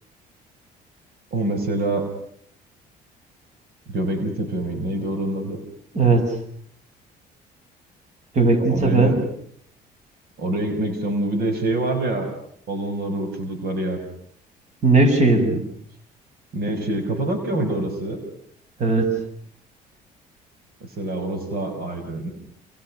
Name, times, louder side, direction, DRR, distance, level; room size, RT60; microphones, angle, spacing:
voice 1, 1.3-2.1 3.9-5.6 8.7-9.2 10.4-12.3 12.7-14.0 16.5-18.2 20.8-22.3, right 1 dB, 65° right, 6 dB, 6.1 m, -25 dB
voice 2, 5.9-6.3 8.3-9.1 14.8-15.6 18.8-19.2, right 3 dB, 40° right, 7 dB, 7.0 m, -17 dB
30.0 x 29.0 x 6.5 m, 0.66 s
cardioid pair, 110°, 17 cm